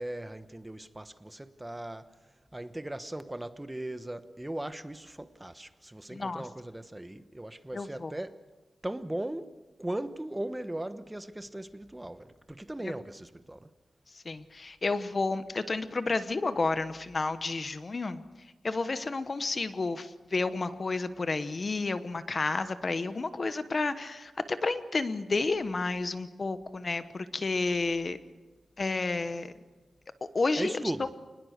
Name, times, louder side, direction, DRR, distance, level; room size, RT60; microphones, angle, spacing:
voice 1, 0.0-2.1 2.5-8.4 8.8-9.5 9.8-13.7 30.6-31.1, right 1 dB, 15° right, 1.2 m, -38 dB
voice 2, 6.1-6.4 7.7-8.1 12.8-12.9 14.2-18.2 18.6-28.2 28.8-29.5 30.3-31.1, left 3 dB, 40° left, 1.0 m, -31 dB
28.0 x 20.0 x 6.7 m
wide cardioid pair, 100°, 0 cm